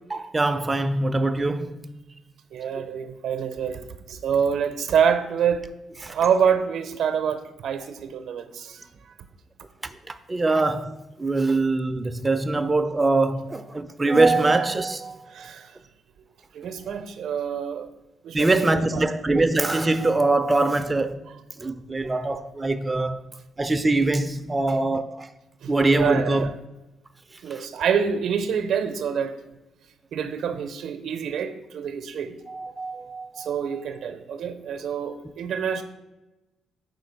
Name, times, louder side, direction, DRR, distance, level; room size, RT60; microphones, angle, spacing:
voice 1, 0.1-1.9 6.0-6.1 10.1-10.9 11.2-15.5 18.3-21.2 21.6-23.2 23.6-25.3 25.7-26.5 27.5-27.6 32.5-33.5, right 2 dB, 20° right, 0.3 m, -23 dB
voice 2, 2.5-3.8 4.1-5.6 6.1-8.8 15.3-15.7 16.5-17.9 18.2-19.0 25.6-26.5 27.4-29.4 30.1-32.3 33.4-35.8, right 7 dB, 70° right, 0.5 m, -26 dB
5.0 x 3.9 x 5.1 m
cardioid pair, 90°, 0 cm